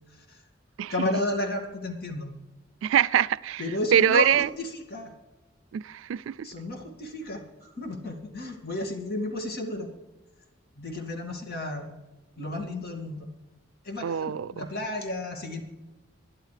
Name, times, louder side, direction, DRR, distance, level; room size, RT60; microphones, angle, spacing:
voice 1, 0.1-0.4 0.9-2.3 3.6-5.1 6.4-9.9 10.8-11.9 12.4-13.3 13.8-15.6, left 1 dB, 55° left, 2.2 m, -32 dB
voice 2, 2.8-3.6 3.9-4.5 5.7-6.5 14.0-14.7, right 9 dB, 80° right, 0.3 m, -24 dB
21.0 x 11.0 x 3.4 m
head